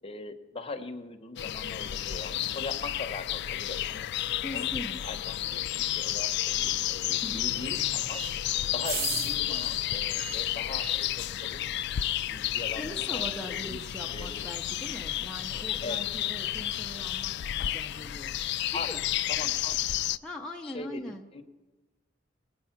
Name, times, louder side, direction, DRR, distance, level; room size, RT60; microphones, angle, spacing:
voice 1, 0.0-4.1 4.5-8.2 8.7-11.6 12.3-13.8 14.1-14.5 15.8-16.0 18.7-18.9 19.3-20.0 20.6-21.4, left 3 dB, 30° left, 7 dB, 0.8 m, -41 dB
sound 1, 1.4-20.2, left 13 dB, 60° left, 0.3 m, -31 dB
voice 2, 4.4-5.0 7.2-7.5 12.4-19.0 20.2-21.3, left 1 dB, 5° left, -1 dB, 0.6 m, -41 dB
sound 2, 7.5-17.5, right 6 dB, 80° right, 0.8 m, -43 dB
20.0 x 7.6 x 5.8 m, 1.3 s
head